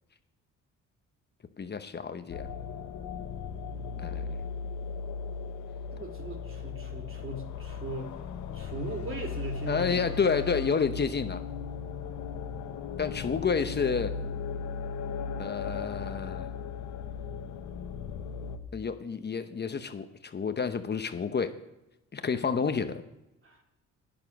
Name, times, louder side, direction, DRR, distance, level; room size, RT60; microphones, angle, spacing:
voice 1, 1.6-2.5 4.0-4.4 9.7-11.4 13.0-14.1 15.4-16.5 18.7-21.5 22.1-23.0, left 5 dB, 35° left, 8 dB, 0.9 m, -30 dB
sound 1, 2.3-18.6, left 5 dB, 75° left, 1.1 m, -37 dB
voice 2, 5.9-8.1 8.5-10.2 23.4-23.6, right 1 dB, 45° right, 2 dB, 2.8 m, -38 dB
11.0 x 9.0 x 6.0 m, 0.94 s
cardioid pair, 90°, 30 cm